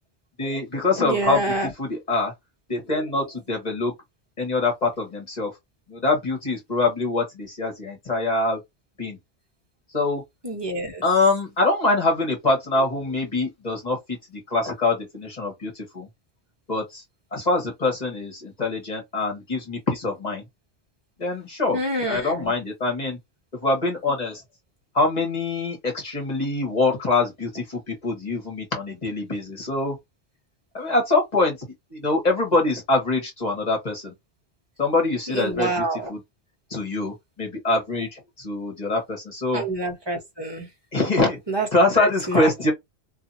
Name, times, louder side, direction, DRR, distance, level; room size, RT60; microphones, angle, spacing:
voice 1, 0.4-2.3 2.7-3.9 4.4-5.5 5.9-8.6 9.0-9.2 9.9-10.2 11.0-16.1 16.7-17.0 17.3-20.4 21.2-21.8 22.1-23.2 23.6-24.4 24.9-30.0 30.7-31.6 31.9-34.1 34.8-36.2 36.7-39.6 40.9-41.4 41.7-42.7, left 2 dB, 40° left, 1.4 m, -24 dB
voice 2, 1.0-1.7 10.4-11.0 21.7-22.5 35.3-36.1 39.5-40.7 41.5-41.7 41.9-42.5, right 2 dB, 25° right, 1.1 m, -27 dB
2.7 x 2.6 x 2.7 m
omnidirectional pair, 1.1 m